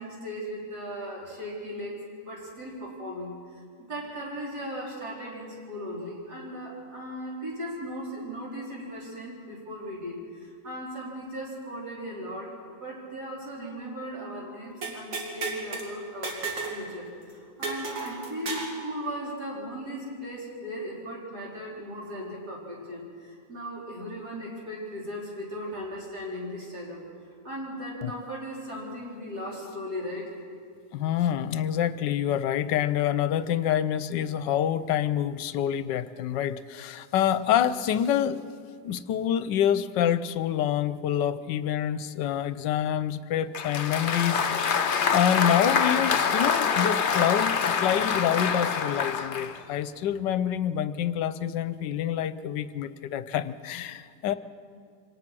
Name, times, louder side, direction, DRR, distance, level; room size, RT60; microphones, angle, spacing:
voice 1, 0.0-16.4 16.7-27.0 27.4-30.3, equal, 55° right, -3 dB, 4.8 m, -37 dB
sound 1, 14.8-15.9 16.2-16.8 17.1-17.2 17.6-18.8, right 4 dB, 85° right, 3.3 m, -33 dB
voice 2, 30.9-38.4 38.8-44.4 45.1-54.3, left 10 dB, 75° left, 14 dB, 1.3 m, -27 dB
Applause, 43.5-49.6, left 6 dB, 60° left, 0.5 m, -25 dB
24.5 x 18.5 x 6.1 m, 2.2 s
omnidirectional pair, 2.0 m